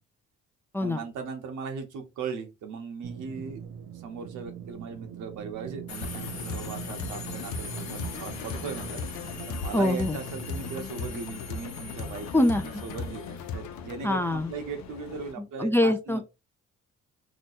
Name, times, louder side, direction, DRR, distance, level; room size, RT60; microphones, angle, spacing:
voice 1, 0.8-3.7 3.9-16.2, right 5 dB, 85° right, 1.1 m, -38 dB
sound 1, 3.0-10.8, right 9 dB, 65° right, 0.7 m, -42 dB
Subway metro underground, 5.9-15.3, left 5 dB, 65° left, 0.9 m, -41 dB
sound 2, 6.0-14.0, left 5 dB, 90° left, 0.6 m, -38 dB
voice 2, 9.7-10.2 12.3-12.8 14.0-14.5 15.6-16.2, left 1 dB, 10° left, 0.4 m, -24 dB
3.0 x 2.2 x 4.2 m
cardioid pair, 90°, 30 cm